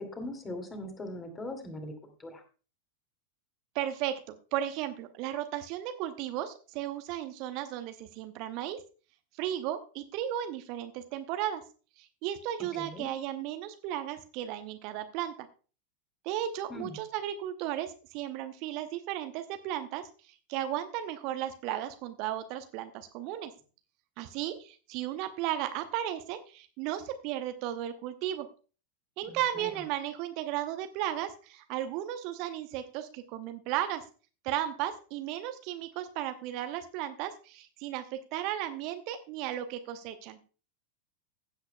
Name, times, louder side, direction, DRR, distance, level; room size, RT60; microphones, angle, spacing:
voice 1, 0.0-1.9 2.2-2.4 12.7-13.1 16.7-17.0 29.2-29.8, left 1 dB, 15° left, 5 dB, 2.4 m, -40 dB
voice 2, 3.7-8.8 9.3-11.6 12.0-15.5 16.2-23.5 24.2-28.5 29.2-34.0 34.4-40.4, right 12 dB, 45° right, 9 dB, 0.8 m, -35 dB
15.5 x 8.1 x 2.2 m, 0.37 s
figure-of-eight pair, 90°, 0 cm